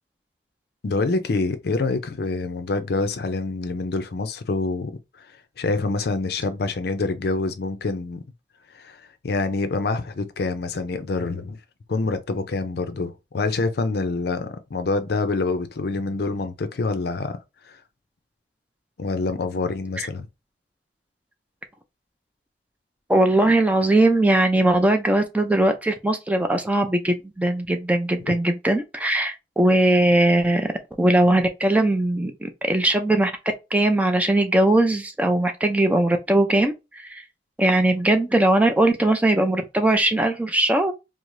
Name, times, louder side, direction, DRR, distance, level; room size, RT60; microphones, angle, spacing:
voice 1, 0.8-4.9 5.2-5.3 5.6-8.2 8.7-11.6 11.9-17.4 17.7-17.8 19.0-20.3, left 3 dB, 60° left, 0.5 m, -26 dB
voice 2, 23.1-30.7 31.0-33.3 33.7-37.2 37.6-40.9, right 1 dB, 10° right, 0.4 m, -20 dB
4.6 x 2.0 x 2.5 m
head